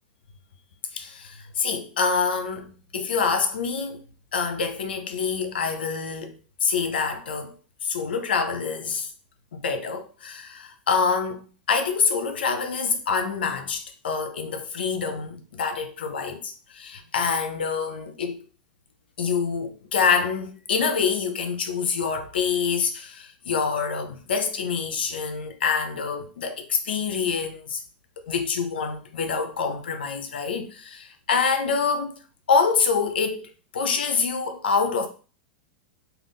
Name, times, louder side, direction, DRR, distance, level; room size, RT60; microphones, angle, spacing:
voice 1, 0.9-4.0 4.3-7.5 7.8-9.1 9.5-18.4 19.2-27.8 28.3-32.2 32.5-35.1, left 5 dB, 80° left, 0.6 m, -26 dB
2.5 x 2.4 x 3.4 m
hypercardioid pair, 105°, 5 cm